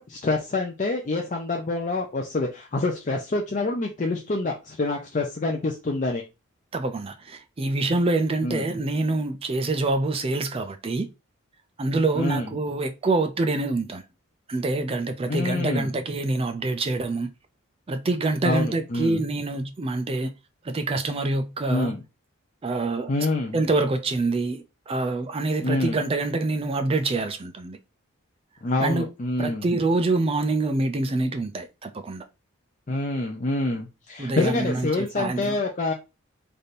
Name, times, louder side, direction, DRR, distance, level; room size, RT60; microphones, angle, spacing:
voice 1, 0.0-6.2 8.4-8.6 12.1-12.5 15.3-15.9 18.4-19.2 21.7-22.0 23.1-23.6 25.6-26.0 28.6-29.6 32.9-35.9, left 2 dB, 35° left, 0.5 m, -26 dB
voice 2, 6.7-11.1 11.8-14.0 14.5-17.3 17.9-20.3 20.6-21.9 22.6-23.1 23.5-27.8 28.8-29.1 29.4-32.2 34.2-35.6, right 2 dB, 25° right, 0.4 m, -26 dB
3.4 x 2.5 x 4.1 m
head